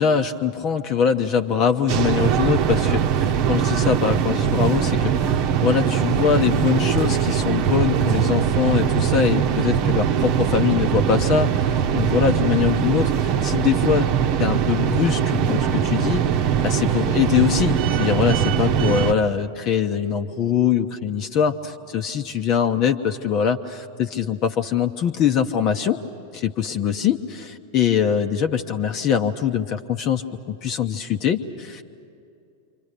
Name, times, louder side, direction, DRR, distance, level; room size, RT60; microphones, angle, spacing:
voice 1, 0.0-14.1 14.4-26.0 26.3-31.8, left 8 dB, 35° left, 6 dB, 0.9 m, -23 dB
sound 1, 1.9-19.1, right 8 dB, 45° right, 1.0 m, -21 dB
28.0 x 25.5 x 6.7 m, 2.5 s
figure-of-eight pair, 90°, 0 cm